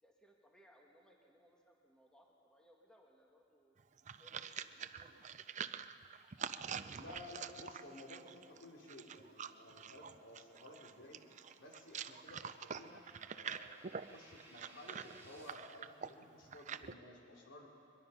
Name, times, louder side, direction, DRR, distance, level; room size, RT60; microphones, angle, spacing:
voice 1, 0.0-3.8 4.1-5.7, equal, 5° left, -1 dB, 1.9 m, -67 dB
sound 1, 3.8-16.9, right 7 dB, 40° right, 0.5 m, -46 dB
voice 2, 7.0-11.2 11.6-13.0 13.3-17.7, left 1 dB, 70° left, 1 dB, 3.4 m, -55 dB
sound 2, 8.8-15.5, right 2 dB, 15° right, 2.9 m, -65 dB
22.5 x 22.5 x 5.7 m, 2.6 s
head